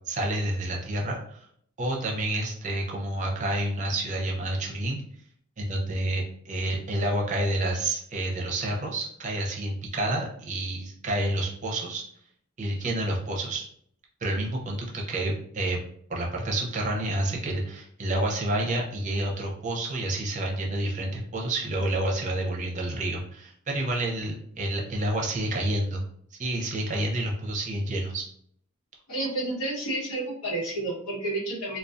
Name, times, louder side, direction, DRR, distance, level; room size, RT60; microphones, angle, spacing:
voice 1, 0.1-1.4 1.8-5.0 5.6-12.0 12.6-13.6 14.2-15.8 16.1-26.0 26.3-28.3, right 1 dB, 35° right, -1 dB, 0.5 m, -29 dB
voice 2, 29.1-31.8, right 2 dB, 90° left, -6 dB, 1.1 m, -30 dB
2.3 x 2.2 x 2.5 m, 0.65 s
head